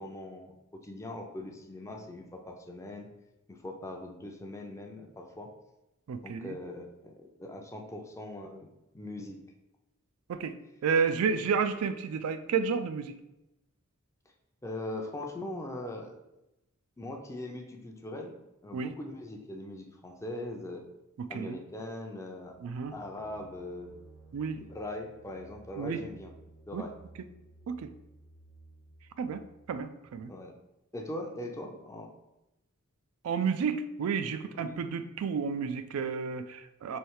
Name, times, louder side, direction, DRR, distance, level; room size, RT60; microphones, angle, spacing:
voice 1, 0.0-3.1 3.5-5.5 6.2-9.4 14.6-16.1 17.0-18.4 18.6-20.9 21.3-22.6 22.9-23.9 24.5-26.3 26.7-26.9 30.3-30.5 30.9-32.1 34.6-34.8, left 1 dB, 15° left, 2 dB, 0.5 m, -41 dB
voice 2, 6.1-6.6 10.3-10.5 10.8-13.2 18.7-18.9 21.2-21.6 22.6-22.9 24.3-24.6 25.8-26.0 26.7-26.8 27.7-27.9 29.2-29.4 29.7-30.3 33.2-37.0, right 6 dB, 70° right, 9 dB, 0.3 m, -31 dB
sound 1, 22.4-30.2, right 2 dB, 80° left, 0.9 m, -56 dB
3.2 x 3.1 x 4.7 m, 0.92 s
head